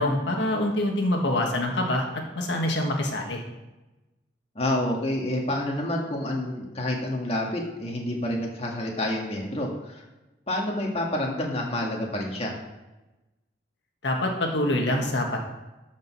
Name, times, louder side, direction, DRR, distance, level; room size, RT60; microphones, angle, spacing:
voice 1, 0.0-2.1 2.3-3.4 14.0-15.4, left 1 dB, 80° left, 1 dB, 1.7 m, -25 dB
voice 2, 4.6-10.0 10.5-12.6, left 1 dB, 35° left, -1 dB, 1.8 m, -28 dB
12.5 x 5.3 x 6.1 m, 1.0 s
head